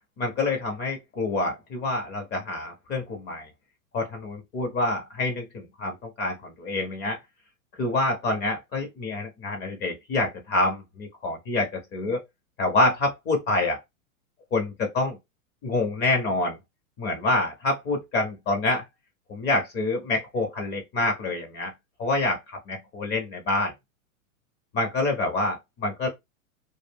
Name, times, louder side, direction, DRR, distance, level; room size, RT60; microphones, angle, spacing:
voice 1, 0.2-3.5 3.9-7.2 7.8-12.2 12.6-13.8 14.5-15.2 15.6-16.6 17.0-18.8 19.3-21.7 22.0-23.7 24.7-26.1, left 2 dB, 25° left, 0.6 m, -27 dB
2.3 x 2.0 x 3.4 m
hypercardioid pair, 125°, 42 cm